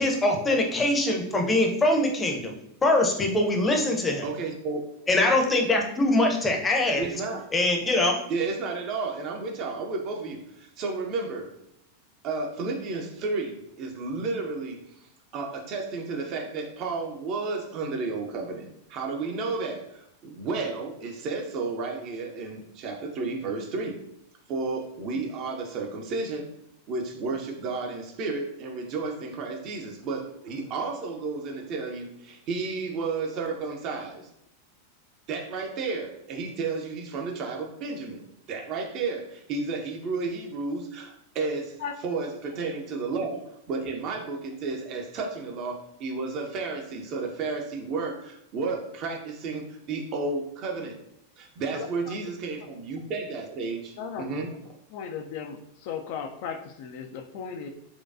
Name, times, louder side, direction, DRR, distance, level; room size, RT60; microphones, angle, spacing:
voice 1, 0.0-2.5 2.8-4.2 5.1-7.1 7.5-8.2, left 2 dB, 15° left, 1 dB, 0.7 m, -23 dB
voice 2, 4.2-4.8 7.0-7.4 8.3-11.5 12.2-24.0 24.5-26.5 26.9-34.3 35.3-38.2 38.5-41.8 42.0-51.0 51.4-54.5, right 3 dB, 40° right, 2 dB, 0.6 m, -32 dB
voice 3, 54.9-57.7, left 7 dB, 50° left, 5 dB, 0.3 m, -36 dB
4.3 x 2.3 x 2.5 m, 0.78 s
figure-of-eight pair, 90°, 0 cm